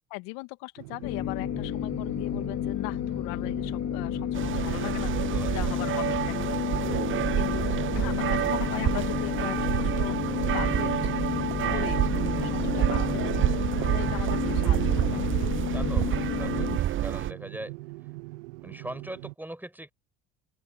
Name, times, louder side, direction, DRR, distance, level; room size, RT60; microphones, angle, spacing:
voice 1, 0.1-11.2 11.5-13.5 13.8-15.6, left 27 dB, 65° left, 2.5 m, -39 dB
sound 1, 0.8-19.3, right 22 dB, 75° right, 1.2 m, -43 dB
sound 2, 1.0-16.8, left 11 dB, 45° left, 2.4 m, -31 dB
sound 3, 4.3-17.3, right 12 dB, 35° right, 0.6 m, -28 dB
voice 2, 5.3-6.0 11.6-12.0 15.7-17.7 18.6-19.9, right 1 dB, 5° right, 5.7 m, -41 dB
open air
hypercardioid pair, 75°, 37 cm